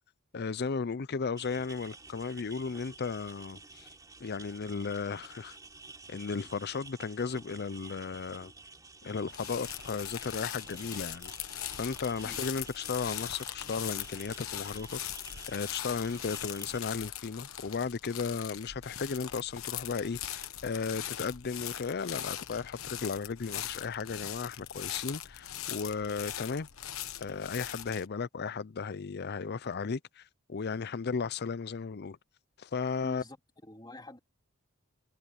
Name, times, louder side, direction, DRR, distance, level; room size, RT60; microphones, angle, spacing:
voice 1, 0.3-3.9 4.2-5.6 6.1-8.5 9.0-11.3 11.7-15.0 15.5-26.7 27.2-32.2 32.6-33.2, left 5 dB, 50° left, 0.5 m, -35 dB
sound 1, 1.4-16.8, right 3 dB, 15° right, 4.8 m, -51 dB
sound 2, 9.3-28.1, left 11 dB, 75° left, 1.1 m, -40 dB
voice 2, 33.0-34.2, left 1 dB, 20° left, 3.5 m, -47 dB
head